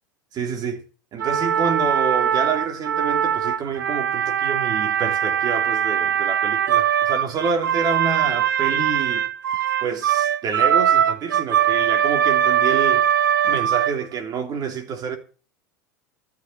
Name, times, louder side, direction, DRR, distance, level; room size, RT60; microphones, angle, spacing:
voice 1, 0.3-0.8 1.1-9.3 9.8-13.1 13.4-15.2, right 5 dB, 40° right, 3.1 m, -28 dB
sound 1, 1.2-14.2, right 9 dB, 85° right, 0.7 m, -21 dB
13.5 x 6.0 x 8.5 m
hypercardioid pair, 90°, 10 cm